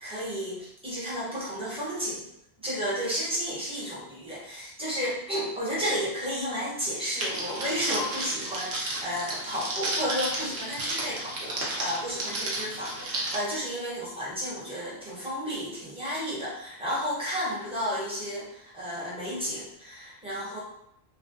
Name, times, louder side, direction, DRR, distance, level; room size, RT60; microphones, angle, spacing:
voice 1, 0.0-2.2 2.6-20.6, equal, 5° right, -9 dB, 0.8 m, -32 dB
Crackle, 7.2-13.4, right 2 dB, 65° right, 0.8 m, -33 dB
2.4 x 2.0 x 2.6 m, 0.76 s
omnidirectional pair, 1.1 m